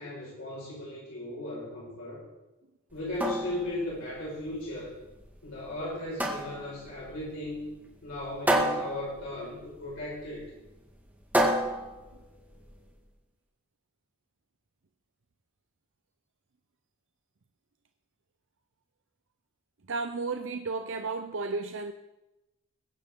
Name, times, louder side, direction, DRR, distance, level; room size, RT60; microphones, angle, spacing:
voice 1, 0.0-2.2 2.9-4.9 5.4-7.7 8.0-10.4, left 1 dB, 70° left, -6 dB, 5.4 m, -36 dB
sound 1, 2.9-12.9, right 1 dB, 10° right, 1.9 m, -32 dB
voice 2, 19.9-21.9, right 3 dB, 60° right, 7 dB, 0.7 m, -33 dB
22.0 x 10.5 x 3.8 m, 1.0 s
head